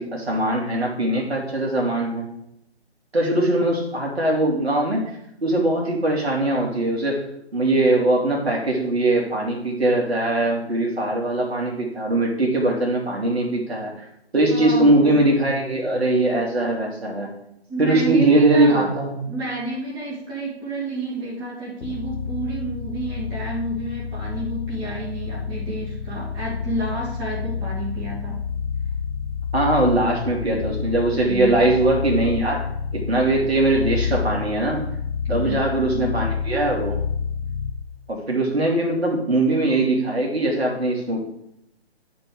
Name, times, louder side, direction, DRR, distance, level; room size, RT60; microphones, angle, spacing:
voice 1, 0.0-2.3 3.1-5.0 5.4-7.2 7.5-14.1 14.3-17.3 17.8-19.2 29.5-32.7 32.9-34.8 35.3-37.0 38.1-41.2, right 2 dB, 70° right, -1 dB, 2.5 m, -21 dB
voice 2, 14.5-15.3 17.7-18.9 19.3-28.4 31.2-31.8 35.2-36.2, right 2 dB, 10° right, -7 dB, 2.5 m, -30 dB
sound 1, 21.8-38.0, left 6 dB, 60° left, 0.6 m, -29 dB
10.0 x 4.6 x 4.8 m, 0.79 s
figure-of-eight pair, 145°, 33 cm